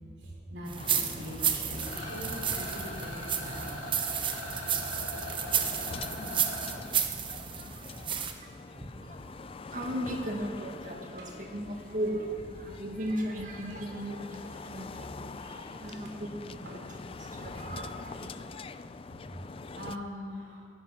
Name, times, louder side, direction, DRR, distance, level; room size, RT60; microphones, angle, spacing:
voice 1, 0.0-4.2 11.2-11.3 12.8-12.9 16.6-17.6 18.3-20.7, equal, 80° right, -1 dB, 3.4 m, -44 dB
sound 1, 0.7-8.3, right 7 dB, 30° right, 0.9 m, -32 dB
sound 2, 0.8-20.0, left 4 dB, 30° left, 0.4 m, -44 dB
Rattle, 1.8-6.7, left 1 dB, 65° left, 3.5 m, -41 dB
voice 2, 8.4-18.9, equal, 45° right, 2 dB, 1.8 m, -37 dB
15.5 x 11.0 x 6.0 m, 2.2 s
head